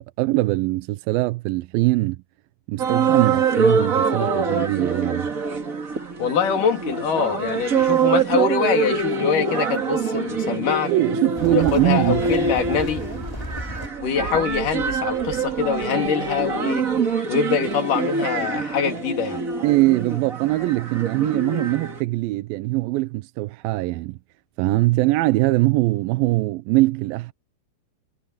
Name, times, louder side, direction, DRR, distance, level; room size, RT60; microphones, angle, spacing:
voice 1, 0.0-2.2 2.7-5.3 10.9-12.2 19.6-24.2 24.6-27.3, right 19 dB, 80° right, 2.3 m, -22 dB
sound 1, 2.8-22.0, right 5 dB, 30° right, 1.6 m, -24 dB
voice 2, 6.2-10.9 11.5-13.0 14.0-16.9 17.3-19.4, left 7 dB, 60° left, 4.4 m, -24 dB
sound 2, 11.3-13.9, equal, 5° left, 3.8 m, -33 dB
omnidirectional pair, 4.4 m